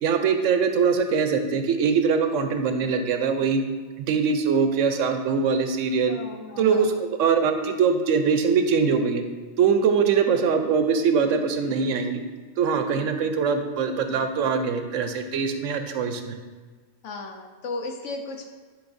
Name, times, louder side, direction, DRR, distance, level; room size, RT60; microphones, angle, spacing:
voice 1, 0.0-3.6 4.0-6.2 6.6-9.2 9.6-12.2 12.6-16.4, right 5 dB, 80° right, 7 dB, 1.0 m, -22 dB
voice 2, 6.1-6.9 12.9-13.3 17.0-18.5, left 3 dB, 75° left, 3 dB, 1.1 m, -36 dB
10.5 x 5.3 x 2.6 m, 1.5 s
omnidirectional pair, 1.3 m